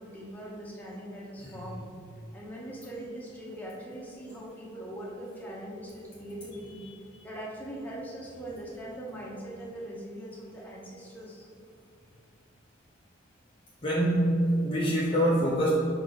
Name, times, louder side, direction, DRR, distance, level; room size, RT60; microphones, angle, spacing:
voice 1, 0.0-1.8 2.3-6.8 7.2-11.5, right 1 dB, 10° left, -5 dB, 1.1 m, -41 dB
voice 2, 13.8-15.7, equal, 25° left, -6 dB, 0.7 m, -25 dB
6.5 x 4.3 x 4.0 m, 2.4 s
head